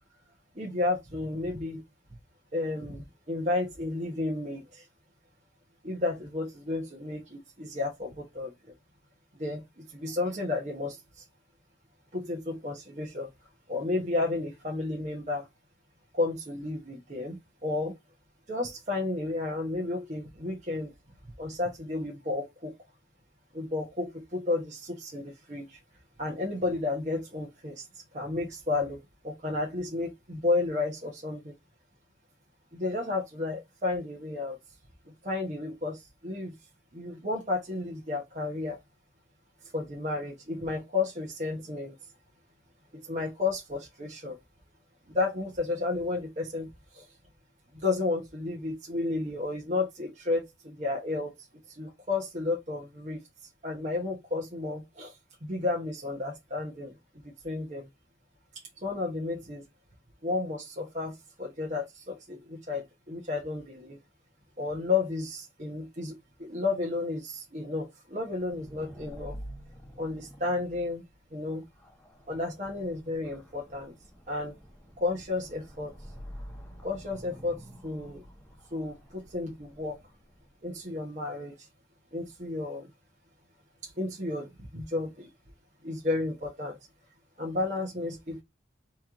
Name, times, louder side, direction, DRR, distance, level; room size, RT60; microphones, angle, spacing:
voice 1, 0.5-1.8 2.5-4.8 5.8-8.5 9.3-11.2 12.1-13.3 13.7-15.5 16.1-18.0 18.5-20.9 21.4-22.7 23.5-25.8 26.2-27.9 28.1-31.5 32.7-34.6 35.1-36.5 36.9-38.8 39.7-41.9 42.9-44.4 45.1-46.7 46.9-47.0 47.7-51.3 51.8-53.2 53.6-55.1 55.4-56.9 57.4-57.9 58.8-59.6 60.2-64.0 64.6-69.3 70.0-71.0 71.3-71.6 72.3-73.9 74.3-74.5 75.0-75.9 76.8-78.2 78.7-80.0 80.6-81.6 82.1-82.9 83.8-85.3 85.8-86.8 87.4-88.4, left 3 dB, 40° right, 1.2 m, -32 dB
sound 1, 68.2-80.8, equal, 10° left, 1.1 m, -48 dB
4.5 x 3.1 x 3.6 m
head